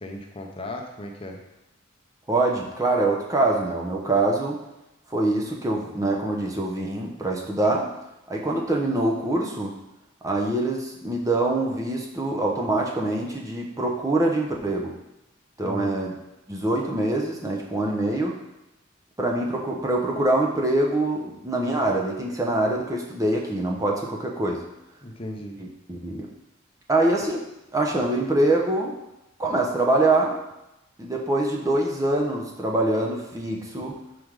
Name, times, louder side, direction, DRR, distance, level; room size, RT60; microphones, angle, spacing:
voice 1, 0.0-1.4 15.6-16.0 25.0-25.6, left 1 dB, 30° left, 2 dB, 0.8 m, -36 dB
voice 2, 2.3-4.6 5.1-7.9 8.3-9.8 10.2-15.0 15.6-16.1 16.5-18.4 19.2-24.6 25.6-26.3 26.9-27.4 27.7-28.9 29.4-30.4 31.0-33.9, right 2 dB, 15° right, -1 dB, 0.9 m, -24 dB
5.8 x 5.2 x 4.8 m, 0.90 s
head